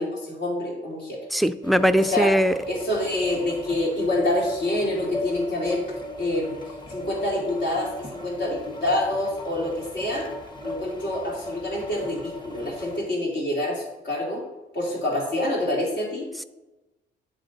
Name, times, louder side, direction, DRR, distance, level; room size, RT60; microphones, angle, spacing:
voice 1, 0.0-1.2 2.0-2.4 2.7-5.9 6.2-6.6 6.9-10.3 10.6-14.5 14.7-16.3, left 1 dB, 65° left, -3 dB, 2.5 m, -27 dB
voice 2, 1.3-2.5, equal, ahead, 9 dB, 0.3 m, -20 dB
sound 1, 1.6-13.0, left 1 dB, 25° left, 1.1 m, -37 dB
10.0 x 3.6 x 4.0 m, 1.1 s
cardioid pair, 90°, 20 cm